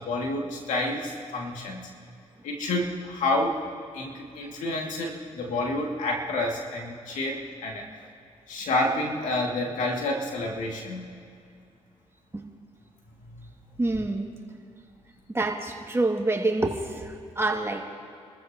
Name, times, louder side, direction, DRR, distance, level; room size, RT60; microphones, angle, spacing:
voice 1, 0.0-1.9 2.4-3.6 3.9-7.9 8.5-11.1 13.2-13.5, left 2 dB, 85° left, -1 dB, 2.6 m, -29 dB
voice 2, 13.8-14.3 15.3-17.9, right 2 dB, 20° right, 0 dB, 2.3 m, -27 dB
29.0 x 14.0 x 3.0 m, 2.4 s
cardioid pair, 60°, 13 cm